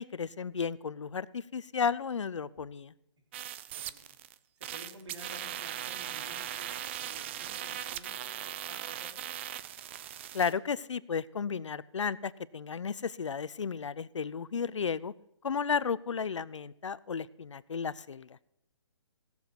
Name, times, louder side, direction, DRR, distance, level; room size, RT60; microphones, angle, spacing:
voice 1, 0.0-2.9 10.3-15.1 15.4-18.4, left 6 dB, 85° left, 19 dB, 0.6 m, -33 dB
sound 1, 3.3-4.3 4.6-10.5, right 11 dB, 25° right, 0.4 m, -39 dB
voice 2, 4.6-9.5, right 2 dB, 75° right, 3 dB, 3.4 m, -52 dB
16.5 x 7.1 x 5.9 m, 0.80 s
hypercardioid pair, 150°, 15 cm